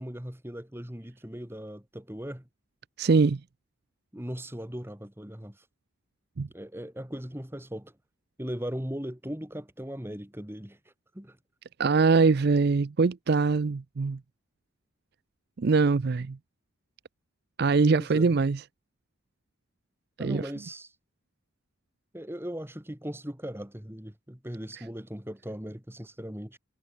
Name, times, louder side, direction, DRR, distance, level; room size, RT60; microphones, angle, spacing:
voice 1, 0.0-2.5 4.1-5.6 6.5-7.9 8.4-10.8 11.1-11.4 17.9-18.4 20.2-20.9 22.1-26.6, equal, 10° right, 1.7 m, -38 dB
voice 2, 3.0-3.4 6.4-6.5 11.8-14.2 15.6-16.4 17.6-18.6 20.2-20.4, right 4 dB, 50° right, 0.4 m, -23 dB
head